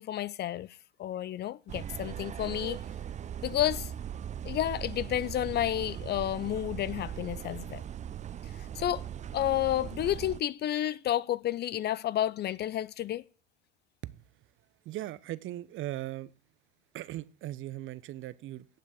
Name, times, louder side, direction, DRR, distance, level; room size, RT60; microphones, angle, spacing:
voice 1, 0.0-2.8 3.4-3.9 4.4-7.8 8.6-9.0 9.3-13.2, left 12 dB, 35° left, 0.6 m, -31 dB
sound 1, 1.7-10.4, right 10 dB, 25° right, 0.6 m, -39 dB
voice 2, 14.8-16.3 16.9-18.7, right 14 dB, 45° right, 0.9 m, -38 dB
18.0 x 6.3 x 8.5 m
hypercardioid pair, 80°, 29 cm